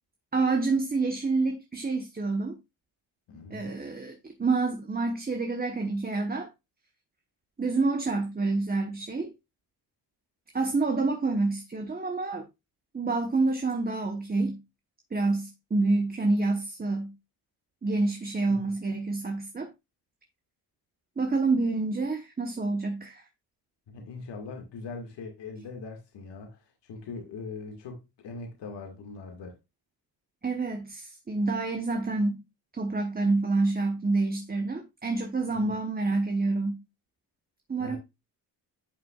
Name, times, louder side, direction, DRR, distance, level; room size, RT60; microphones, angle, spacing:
voice 1, 0.3-2.6 3.5-6.5 7.6-9.3 10.5-12.5 12.9-14.6 15.1-17.1 17.8-19.7 21.2-23.2 30.4-32.4 32.7-36.8 37.7-38.0, right 3 dB, 20° right, 1.0 m, -28 dB
voice 2, 3.3-3.8 18.5-18.7 23.9-29.6 35.5-35.8 37.8-38.0, left 4 dB, 80° left, 2.0 m, -41 dB
11.0 x 5.9 x 2.4 m
cardioid pair, 90°, 41 cm